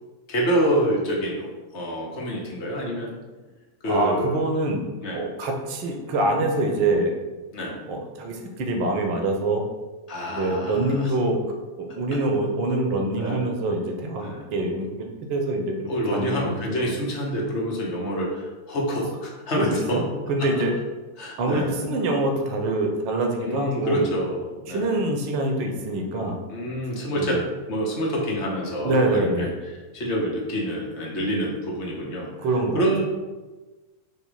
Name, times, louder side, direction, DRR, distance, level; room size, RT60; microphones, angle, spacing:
voice 1, 0.3-1.5 1.7-3.1 3.8-4.4 5.0-5.2 7.5-7.8 10.1-11.1 13.2-13.5 14.2-14.4 15.9-20.0 20.4-20.6 21.2-21.7 23.4-24.9 26.5-32.3 32.7-33.0, equal, 45° left, -2 dB, 0.8 m, -27 dB
voice 2, 3.9-7.1 7.9-9.6 10.3-16.9 19.5-20.7 21.4-24.1 24.7-26.4 27.1-27.4 28.8-29.5 32.4-32.8, right 2 dB, 45° right, 2 dB, 0.5 m, -25 dB
3.0 x 2.0 x 3.5 m, 1.2 s
figure-of-eight pair, 90°, 0 cm